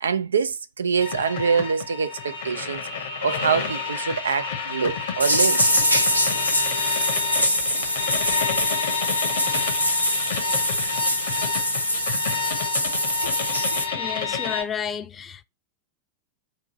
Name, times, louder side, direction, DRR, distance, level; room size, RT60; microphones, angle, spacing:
voice 1, 0.0-5.6, right 6 dB, 70° right, 0.4 m, -25 dB
sound 1, 1.0-14.6, left 6 dB, 60° left, 1.1 m, -29 dB
sound 2, 5.2-13.8, equal, 90° left, 0.7 m, -24 dB
voice 2, 13.9-15.4, left 7 dB, 20° left, 0.4 m, -31 dB
5.0 x 2.6 x 3.9 m
figure-of-eight pair, 90°, 0 cm